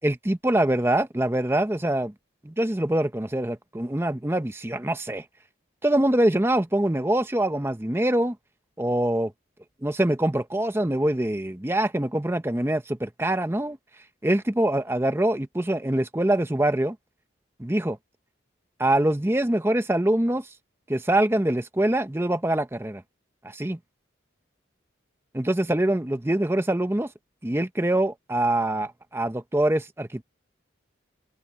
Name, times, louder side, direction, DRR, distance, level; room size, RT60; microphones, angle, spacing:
voice 1, 0.0-2.1 2.4-5.2 5.8-8.4 8.8-9.3 9.8-13.8 14.2-17.0 17.6-18.0 18.8-20.5 20.9-23.0 23.4-23.8 25.3-27.1 27.4-30.2, right 1 dB, 10° right, 0.7 m, -24 dB
open air
head